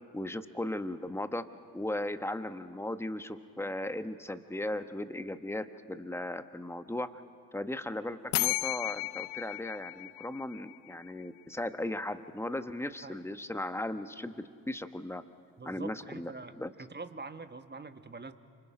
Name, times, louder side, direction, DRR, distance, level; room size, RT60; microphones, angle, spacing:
voice 1, 0.1-1.4 1.7-7.2 7.5-15.2 15.6-16.3 16.6-16.7, left 1 dB, 5° left, 10 dB, 1.3 m, -37 dB
sound 1, 8.3-11.1, left 24 dB, 80° left, 0.5 m, -34 dB
voice 2, 15.6-16.5 16.8-18.3, right 4 dB, 20° right, 9 dB, 1.5 m, -44 dB
28.5 x 26.0 x 5.1 m, 2.3 s
hypercardioid pair, 50°, 46 cm